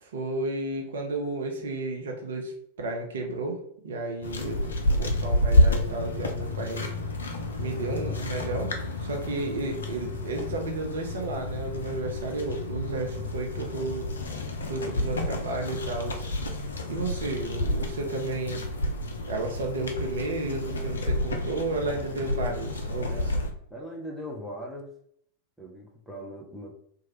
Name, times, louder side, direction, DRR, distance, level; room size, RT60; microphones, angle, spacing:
voice 1, 0.0-6.9 7.6-8.7 9.0-14.1 14.6-16.3 16.9-18.7 19.3-23.4, right 2 dB, 60° right, 1 dB, 0.6 m, -32 dB
sound 1, 4.2-23.5, left 1 dB, 70° left, 0.5 m, -29 dB
voice 2, 23.0-23.3 23.7-24.9 25.6-26.7, equal, 5° left, -1 dB, 0.7 m, -39 dB
3.0 x 2.3 x 2.9 m, 0.65 s
figure-of-eight pair, 90°, 0 cm